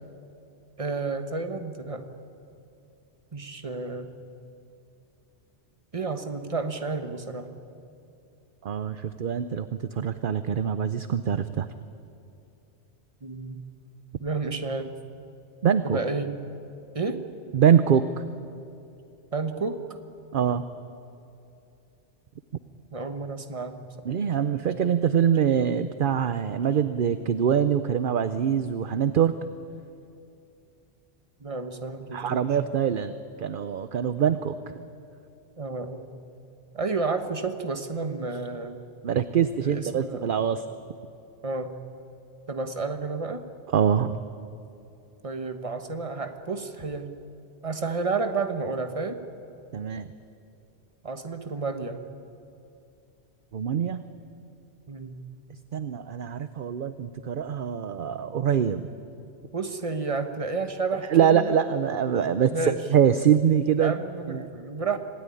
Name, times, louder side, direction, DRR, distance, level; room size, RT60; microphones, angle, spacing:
voice 1, 0.8-2.1 3.3-4.1 5.9-7.5 13.2-13.6 14.2-14.9 15.8-16.4 16.9-17.2 19.3-19.8 22.9-24.2 31.4-32.5 35.6-36.1 36.7-38.9 39.6-40.2 41.4-41.8 42.5-43.4 45.2-47.2 47.6-49.2 51.0-52.0 54.9-55.2 59.5-61.6 62.5-62.8 63.8-65.0, right 4 dB, 30° right, 7 dB, 1.3 m, -31 dB
voice 2, 8.6-9.7 10.0-11.7 15.6-16.0 17.5-18.0 20.3-20.6 24.1-29.4 32.1-34.6 39.0-40.6 43.7-44.2 49.7-50.1 53.5-54.0 55.7-58.9 61.1-63.9 64.3-64.5, right 8 dB, 55° right, 11 dB, 0.8 m, -24 dB
26.0 x 16.5 x 9.9 m, 2.6 s
omnidirectional pair, 1.2 m